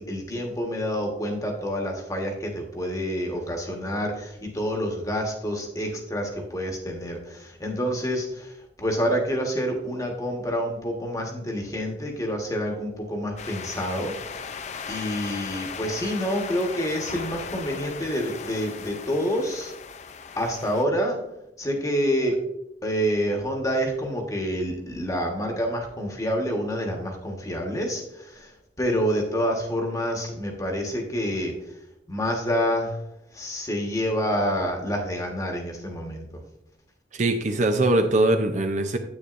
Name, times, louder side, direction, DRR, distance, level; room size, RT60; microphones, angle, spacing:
voice 1, 0.0-14.1 14.9-19.7 20.3-21.2 21.6-22.4 22.8-28.5 28.8-31.5 32.1-33.0 33.3-36.3, equal, 20° left, 2 dB, 1.3 m, -27 dB
sound 1, 13.4-20.8, left 6 dB, 40° left, 0.4 m, -37 dB
voice 2, 37.1-39.0, right 2 dB, 45° right, 6 dB, 0.6 m, -22 dB
9.6 x 8.4 x 2.5 m, 0.87 s
head